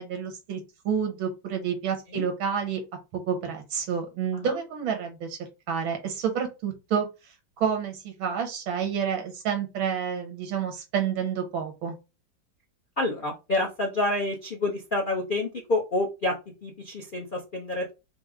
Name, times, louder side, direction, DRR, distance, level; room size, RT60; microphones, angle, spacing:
voice 1, 0.0-2.8 3.1-5.4 5.7-7.1 7.6-12.0, right 7 dB, 90° right, 4 dB, 2.0 m, -29 dB
voice 2, 13.0-16.3 16.6-17.9, left 2 dB, 60° left, 0 dB, 0.5 m, -28 dB
5.2 x 2.1 x 4.7 m, 0.27 s
omnidirectional pair, 2.1 m